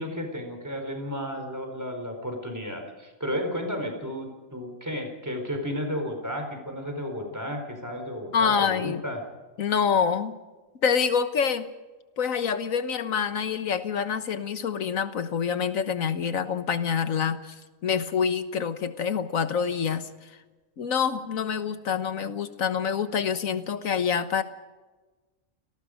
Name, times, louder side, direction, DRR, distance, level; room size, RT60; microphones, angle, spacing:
voice 1, 0.0-9.2, equal, 15° right, 3 dB, 4.4 m, -33 dB
voice 2, 8.3-9.0 9.6-10.3 10.8-11.7 12.2-17.5 17.8-20.1 20.8-24.4, left 7 dB, 90° left, 10 dB, 1.6 m, -26 dB
29.5 x 18.5 x 5.2 m, 1.2 s
omnidirectional pair, 1.4 m